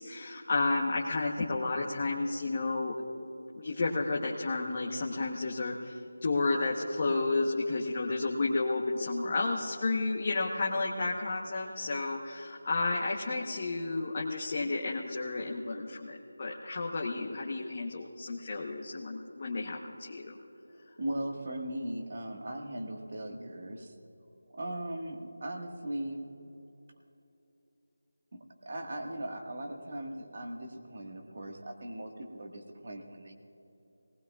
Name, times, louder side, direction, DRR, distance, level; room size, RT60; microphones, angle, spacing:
voice 1, 0.0-2.9 3.5-20.4, left 3 dB, 30° left, -2 dB, 0.9 m, -32 dB
voice 2, 21.0-23.9 24.5-26.2 28.3-33.3, right 1 dB, 45° right, 3 dB, 1.5 m, -38 dB
19.0 x 19.0 x 2.3 m, 3.0 s
figure-of-eight pair, 175°, 0 cm